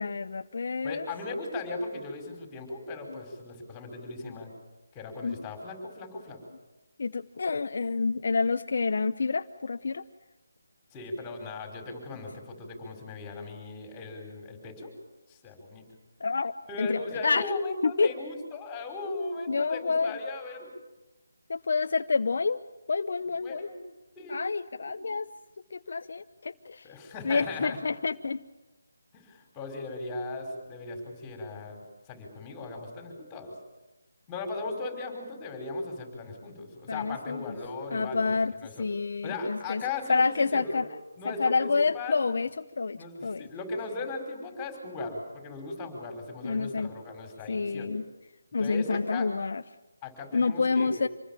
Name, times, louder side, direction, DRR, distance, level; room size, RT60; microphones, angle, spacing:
voice 1, 0.0-1.0 3.1-3.2 5.2-5.4 7.0-10.0 16.2-17.4 17.8-18.1 19.5-20.2 21.5-22.6 22.9-23.7 24.3-25.3 25.7-26.9 27.2-28.4 36.9-37.6 37.9-38.5 38.8-39.8 40.1-40.9 41.2-43.5 46.4-46.9 47.5-48.0 48.5-49.6 50.3-51.1, left 4 dB, 60° left, 9 dB, 0.8 m, -28 dB
voice 2, 0.8-4.5 4.9-6.4 10.9-14.9 15.3-15.8 16.7-20.7 23.4-23.8 24.1-24.4 24.8-25.1 26.8-27.8 29.1-31.8 32.1-33.5 34.3-38.3 38.6-38.8 39.2-40.8 41.2-42.2 42.9-47.9 48.6-49.3 50.0-51.0, left 3 dB, 15° left, 3 dB, 5.2 m, -37 dB
27.0 x 20.5 x 7.4 m, 1.1 s
figure-of-eight pair, 160°, 0 cm